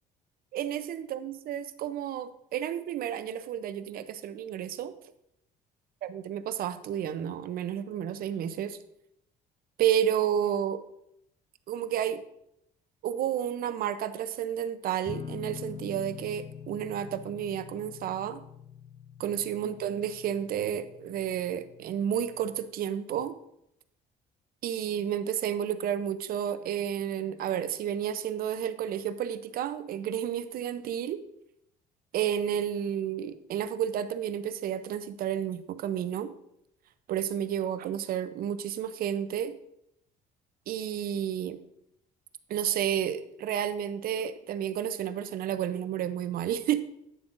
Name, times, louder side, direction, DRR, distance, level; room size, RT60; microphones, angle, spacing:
voice 1, 0.5-4.9 6.0-8.8 9.8-10.8 11.7-12.2 13.0-18.4 19.2-23.3 24.6-31.2 32.1-36.3 37.1-39.5 40.7-41.6 42.5-46.8, right 9 dB, 60° right, 12 dB, 0.6 m, -31 dB
sound 1, 15.1-22.6, left 7 dB, 30° left, 0.3 m, -45 dB
9.3 x 7.2 x 2.5 m, 0.78 s
cardioid pair, 110°, 17 cm